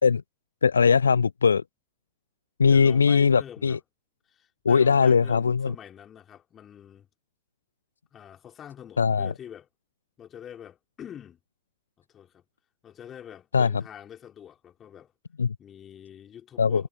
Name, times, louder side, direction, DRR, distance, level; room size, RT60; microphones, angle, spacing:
voice 1, 0.6-1.6 2.6-3.8 4.6-5.7 9.0-9.3 13.5-13.7 15.4-15.6 16.6-16.8, left 5 dB, 75° left, 0.6 m, -20 dB
voice 2, 2.6-3.8 4.3-7.1 8.1-9.7 10.2-11.4 12.0-12.4 12.8-15.1 15.6-16.9, left 9 dB, 25° left, 4.3 m, -45 dB
figure-of-eight pair, 90°, 0 cm